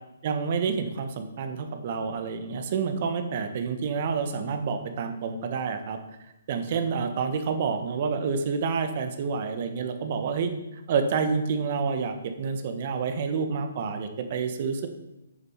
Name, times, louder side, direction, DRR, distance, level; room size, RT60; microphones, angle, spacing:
voice 1, 0.2-6.0 6.5-10.5 10.9-14.9, right 5 dB, 45° right, 7 dB, 1.4 m, -28 dB
9.6 x 6.8 x 5.7 m, 0.94 s
figure-of-eight pair, 140°, 0 cm